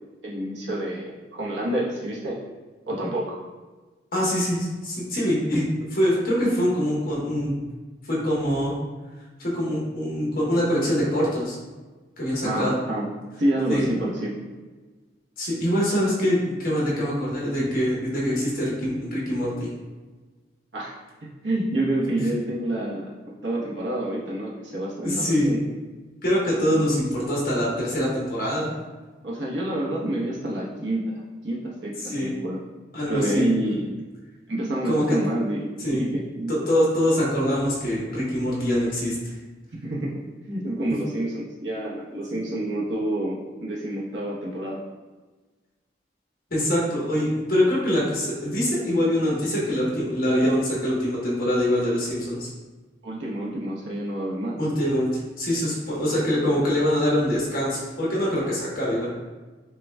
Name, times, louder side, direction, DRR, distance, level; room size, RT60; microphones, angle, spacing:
voice 1, 0.0-2.4 2.9-3.4 12.4-13.0 13.4-14.3 20.7-20.9 21.4-23.0 23.4-25.6 26.7-26.8 29.2-31.0 31.4-32.6 33.1-33.9 34.5-36.6 39.8-44.8 53.0-54.6, right 1 dB, 75° right, -4 dB, 0.9 m, -28 dB
voice 2, 4.1-5.6 5.9-7.6 8.1-8.7 9.4-11.5 12.2-12.7 13.7-13.9 15.4-19.7 25.0-25.5 26.2-28.7 32.0-32.3 32.9-33.5 34.8-35.2 35.8-36.0 36.5-39.4 46.5-52.5 54.6-55.1 55.4-59.1, equal, 50° left, -5 dB, 1.1 m, -24 dB
6.5 x 2.3 x 2.2 m, 1.3 s
head